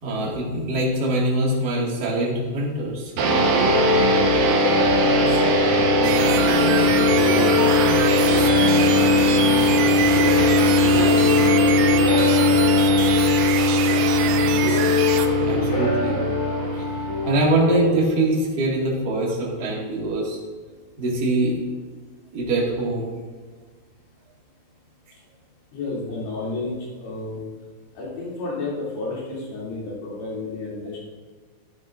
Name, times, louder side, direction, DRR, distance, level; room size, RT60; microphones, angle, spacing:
voice 1, 0.0-3.1 15.4-16.2 16.7-16.9 17.2-20.4 21.0-21.5 22.3-23.1, right 2 dB, 40° right, -5 dB, 1.5 m, -23 dB
sound 1, 3.2-18.6, left 5 dB, 80° left, 5.1 m, -26 dB
sound 2, 3.2-18.0, left 1 dB, 70° right, 2.4 m, -19 dB
voice 2, 5.3-8.3 8.9-10.4 10.7-13.1 25.7-27.5 27.9-31.0, left 2 dB, 65° left, -7 dB, 4.9 m, -32 dB
sound 3, 6.0-15.3, right 10 dB, 90° right, 3.0 m, -28 dB
14.0 x 9.5 x 2.6 m, 1.4 s
omnidirectional pair, 5.1 m